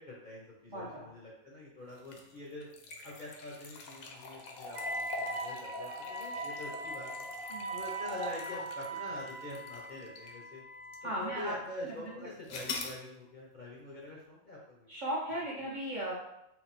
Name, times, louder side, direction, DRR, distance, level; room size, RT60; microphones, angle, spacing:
voice 1, 0.0-2.7 3.0-7.3 7.7-10.6 11.0-14.9, left 1 dB, 45° left, -5 dB, 0.7 m, -45 dB
voice 2, 0.7-1.1 7.5-7.8 11.0-11.5 11.8-11.9 14.9-16.1, right 1 dB, 40° right, -6 dB, 0.8 m, -37 dB
sound 1, 2.0-10.4 10.9-11.0 12.5-13.0, left 3 dB, 75° left, 1.0 m, -43 dB
Wind instrument woodwind instrument, 4.7-11.2, right 2 dB, 65° right, 0.4 m, -41 dB
3.9 x 2.2 x 4.0 m, 0.84 s
omnidirectional pair, 1.5 m